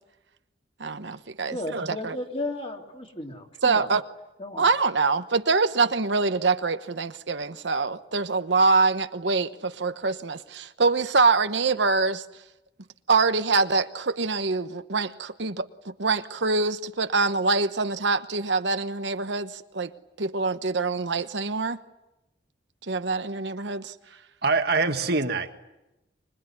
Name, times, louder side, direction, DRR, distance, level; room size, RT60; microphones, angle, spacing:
voice 1, 0.8-2.2 3.6-4.0 4.6-12.2 13.1-19.9 20.2-21.8 22.9-23.9, right 4 dB, 70° right, 1.0 m, -25 dB
voice 2, 1.5-3.9 4.4-4.6, left 2 dB, 30° left, 3.2 m, -34 dB
voice 3, 24.4-25.5, right 3 dB, 55° right, 1.7 m, -24 dB
25.5 x 22.0 x 9.8 m
head